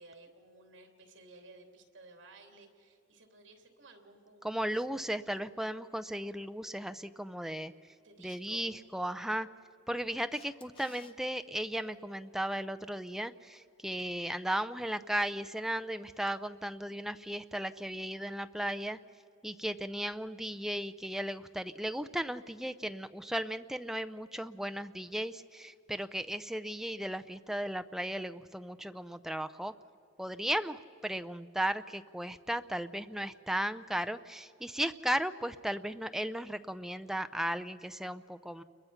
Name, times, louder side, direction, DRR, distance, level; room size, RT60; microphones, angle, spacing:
voice 1, 0.0-5.0 8.0-8.7, right 2 dB, 75° right, 4 dB, 3.1 m, -56 dB
voice 2, 4.4-7.7 8.2-9.5 9.9-19.0 19.4-29.7 30.2-38.6, right 1 dB, ahead, 10 dB, 0.5 m, -36 dB
Camera, 10.3-11.1 17.9-18.0, left 5 dB, 25° left, 1.0 m, -56 dB
30.0 x 22.0 x 5.8 m, 2.6 s
head